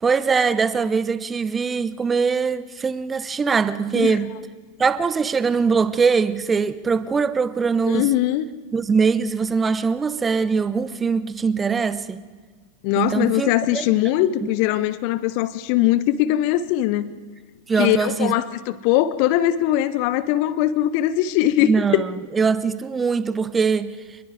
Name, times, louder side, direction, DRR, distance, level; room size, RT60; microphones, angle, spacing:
voice 1, 0.0-4.3 4.8-8.1 8.7-12.2 13.0-13.8 17.7-18.3 21.6-24.0, right 5 dB, 15° right, 0.8 m, -22 dB
voice 2, 7.9-8.4 12.8-17.1 17.8-22.0, left 13 dB, 45° left, 0.8 m, -21 dB
28.5 x 21.5 x 4.9 m
figure-of-eight pair, 90°, 0 cm